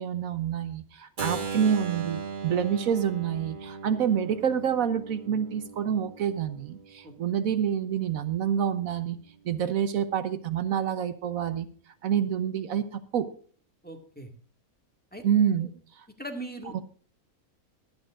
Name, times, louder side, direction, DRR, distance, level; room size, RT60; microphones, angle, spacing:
voice 1, 0.0-9.2 9.4-11.7 12.0-13.3 15.2-15.7 16.7-16.8, right 8 dB, 75° right, 11 dB, 1.2 m, -27 dB
Keyboard (musical), 1.2-7.0, right 4 dB, 40° right, 1.2 m, -38 dB
voice 2, 13.8-14.3 15.1-15.2 15.6-15.7 16.2-16.7, right 1 dB, 5° left, 2 dB, 2.0 m, -39 dB
23.0 x 9.0 x 2.5 m, 0.43 s
omnidirectional pair, 1.5 m